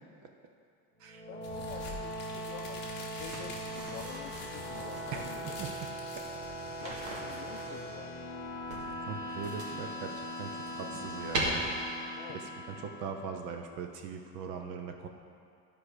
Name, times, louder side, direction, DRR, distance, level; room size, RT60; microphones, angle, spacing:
sound 1, 1.0-13.4, equal, 5° right, 1.6 m, -40 dB
voice 1, 1.3-5.6 6.8-8.2 12.1-12.4, left 9 dB, 50° left, 6 dB, 0.6 m, -48 dB
sound 2, 1.4-6.9, left 3 dB, 25° left, 1.2 m, -47 dB
sound 3, 3.2-5.2 6.5-7.9 8.7-9.9 10.4-11.4, right 3 dB, 75° right, 2.3 m, -41 dB
voice 2, 5.1-5.7 6.1-6.2 9.1-11.6 12.3-12.4 12.8-15.1, right 6 dB, 35° right, 4 dB, 0.5 m, -40 dB
13.0 x 4.9 x 4.9 m, 2.4 s
cardioid pair, 180°, 41 cm